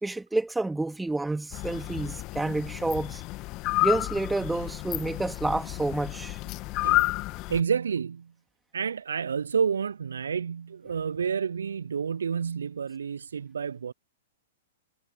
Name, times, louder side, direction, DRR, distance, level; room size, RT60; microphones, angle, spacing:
voice 1, 0.0-3.2 3.8-6.4, right 2 dB, 5° right, 2.3 m, -29 dB
sound 1, 1.5-7.6, left 21 dB, 35° left, 1.6 m, -30 dB
voice 2, 6.8-7.1 7.5-8.3 8.7-13.9, right 6 dB, 75° right, 0.5 m, -29 dB
figure-of-eight pair, 105°, 0 cm